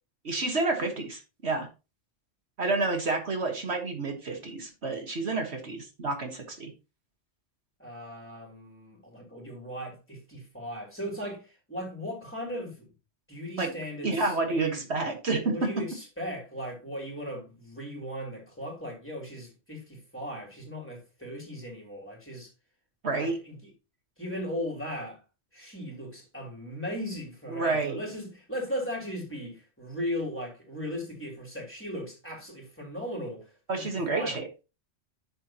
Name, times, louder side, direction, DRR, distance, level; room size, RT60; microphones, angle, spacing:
voice 1, 0.2-1.7 2.6-6.7 13.6-13.7 14.0-15.5 23.0-23.4 27.5-28.0 33.7-34.5, right 3 dB, 65° right, 1.8 m, -29 dB
voice 2, 7.8-12.9 13.3-14.8 15.5-22.5 23.2-23.7 24.2-25.2 25.5-34.4, equal, 10° left, 3.6 m, -37 dB
11.0 x 6.7 x 3.0 m
omnidirectional pair, 1.2 m